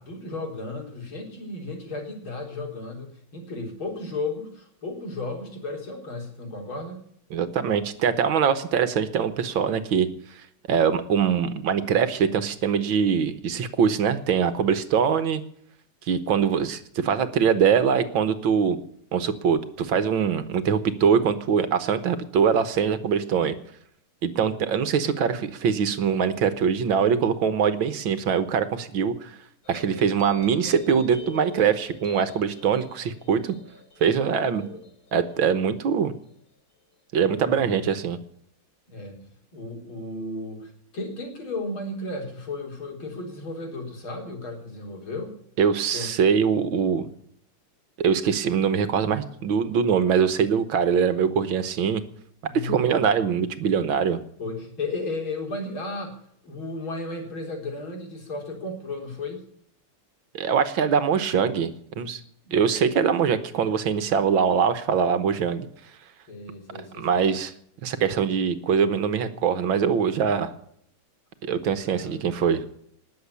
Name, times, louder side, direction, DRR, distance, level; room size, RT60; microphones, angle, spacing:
voice 1, 0.0-7.0 34.6-34.8 37.4-37.9 38.9-45.4 45.9-46.1 52.4-53.0 54.4-59.5 62.4-62.7 66.3-67.3 70.2-70.6 71.9-72.2, left 2 dB, 70° left, 1 dB, 4.8 m, -34 dB
voice 2, 7.3-10.1 10.7-15.4 16.1-18.8 19.1-23.6 24.2-29.4 29.7-33.6 34.0-34.7 35.1-36.1 37.1-38.2 45.6-47.1 48.0-52.0 52.5-54.2 60.3-62.2 62.5-65.7 67.0-67.5 67.8-70.5 71.4-72.6, right 7 dB, 70° right, 12 dB, 1.8 m, -23 dB
sound 1, 29.6-36.5, left 3 dB, 40° left, 4.0 m, -45 dB
20.0 x 7.6 x 8.3 m, 0.67 s
omnidirectional pair, 2.4 m